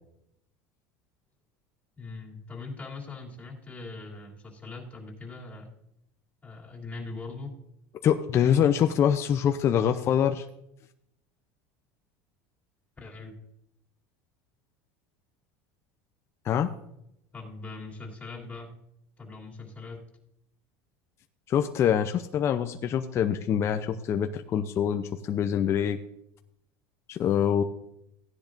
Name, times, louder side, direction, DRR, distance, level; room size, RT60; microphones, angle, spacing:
voice 1, 2.0-5.8 6.4-7.5 13.0-13.3 17.3-18.7 19.2-20.1 27.6-27.7, left 3 dB, 20° left, -2 dB, 3.0 m, -41 dB
voice 2, 8.0-10.4 16.5-16.7 21.5-26.0 27.1-27.6, left 9 dB, 40° left, 7 dB, 0.6 m, -25 dB
15.5 x 10.5 x 2.6 m, 0.78 s
supercardioid pair, 125°, 7 cm